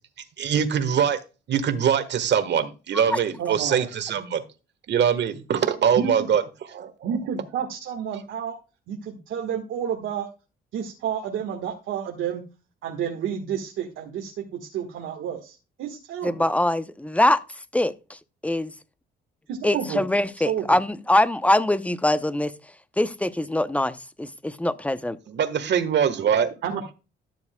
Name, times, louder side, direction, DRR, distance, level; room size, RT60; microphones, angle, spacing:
voice 1, 0.4-1.2 1.5-4.4 4.9-7.2 25.3-26.5, right 8 dB, 60° right, 1.4 m, -23 dB
voice 2, 3.4-3.9 6.0-6.3 7.0-8.6 8.9-10.3 10.7-12.4 12.8-16.5 19.5-20.0 20.4-20.6 26.6-26.9, right 8 dB, 80° right, 1.5 m, -30 dB
voice 3, 16.2-17.4 17.7-18.7 19.6-22.5 23.0-25.2, left 1 dB, 5° left, 0.7 m, -23 dB
13.5 x 7.1 x 2.2 m
cardioid pair, 90°, 20 cm